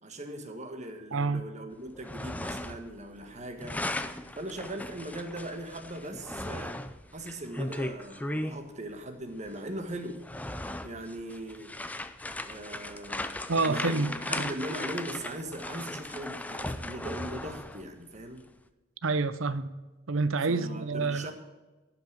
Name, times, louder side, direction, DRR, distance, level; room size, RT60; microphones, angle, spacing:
voice 1, 0.0-3.8 4.4-6.8 7.1-10.2 10.8-11.7 12.4-18.5 20.5-21.3, right 1 dB, 35° right, 1.5 m, -40 dB
voice 2, 1.1-1.4 13.5-14.1 14.4-14.5 19.0-19.7 20.1-21.3, right 3 dB, 70° right, 0.7 m, -28 dB
sound 1, 1.9-3.0 3.2-8.6 9.5-9.6 10.1-17.9, left 1 dB, 5° left, 0.5 m, -37 dB
11.5 x 6.0 x 8.1 m
head